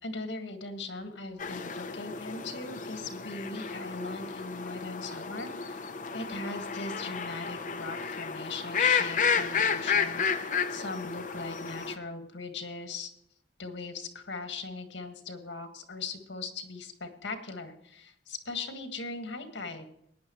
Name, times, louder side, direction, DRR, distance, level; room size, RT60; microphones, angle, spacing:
voice 1, 0.0-13.1 13.6-19.8, left 3 dB, 80° left, 6 dB, 1.8 m, -39 dB
sound 1, 1.4-11.9, left 6 dB, 45° left, 0.7 m, -32 dB
16.5 x 10.0 x 3.1 m, 0.71 s
head